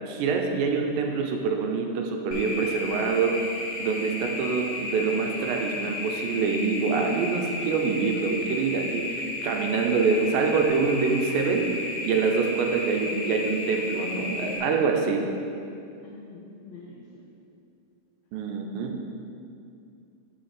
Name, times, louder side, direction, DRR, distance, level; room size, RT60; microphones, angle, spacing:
voice 1, 0.1-3.4 3.8-15.2 18.3-18.9, right 5 dB, 85° right, 3 dB, 2.3 m, -25 dB
sound 1, 2.3-14.6, left 2 dB, 50° left, 1.8 m, -33 dB
voice 2, 12.6-13.4 13.9-14.6 16.0-17.3, left 3 dB, 80° left, -5 dB, 1.5 m, -43 dB
6.3 x 5.1 x 6.1 m, 2.5 s
omnidirectional pair, 4.0 m